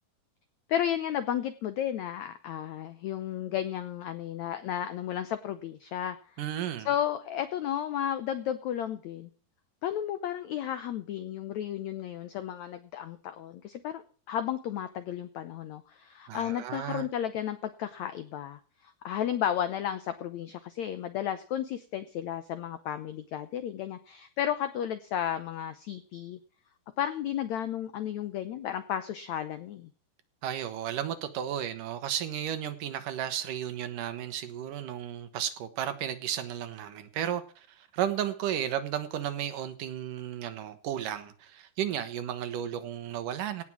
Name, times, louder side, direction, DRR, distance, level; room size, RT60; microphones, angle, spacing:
voice 1, 0.7-6.2 6.8-9.3 9.8-14.0 14.3-26.4 27.0-29.9, left 10 dB, 85° left, 12 dB, 1.6 m, -33 dB
voice 2, 6.4-6.9 16.3-17.1 30.4-43.6, right 10 dB, 65° right, 10 dB, 2.5 m, -33 dB
17.5 x 6.1 x 7.2 m, 0.43 s
omnidirectional pair, 4.4 m